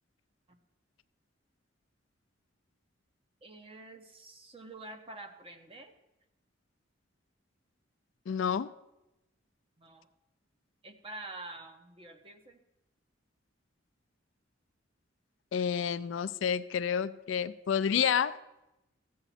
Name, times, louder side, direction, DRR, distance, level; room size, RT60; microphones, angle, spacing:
voice 1, 3.4-6.0 9.8-10.1 10.8-12.6, right 2 dB, 30° right, 0.9 m, -47 dB
voice 2, 8.3-8.7 15.5-18.4, left 7 dB, 70° left, 0.4 m, -29 dB
14.5 x 8.0 x 4.2 m
head